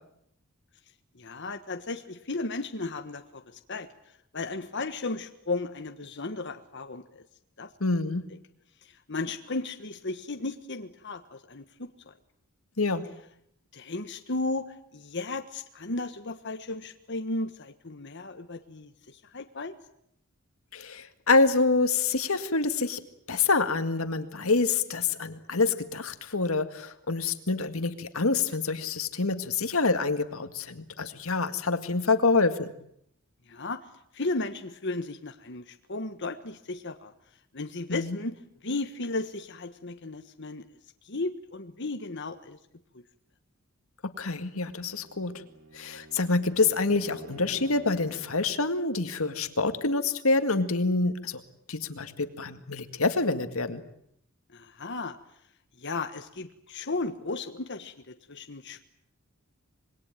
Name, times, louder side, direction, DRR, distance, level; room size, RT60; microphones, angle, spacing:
voice 1, 1.1-3.9 4.3-7.2 7.6-7.7 8.8-12.1 13.7-14.7 14.9-19.7 33.5-33.8 34.1-37.1 37.5-40.6 41.0-42.6 42.9-43.0 54.5-55.2 55.8-58.8, left 2 dB, 55° left, 7 dB, 1.4 m, -35 dB
voice 2, 7.8-8.3 12.8-13.0 20.7-23.0 23.3-32.7 37.9-38.2 44.0-45.4 45.7-51.4 51.7-53.8, left 3 dB, 85° left, 10 dB, 2.0 m, -26 dB
Bowed string instrument, 44.5-48.4, right 2 dB, 85° right, 5.3 m, -49 dB
26.5 x 21.5 x 9.2 m, 0.74 s
head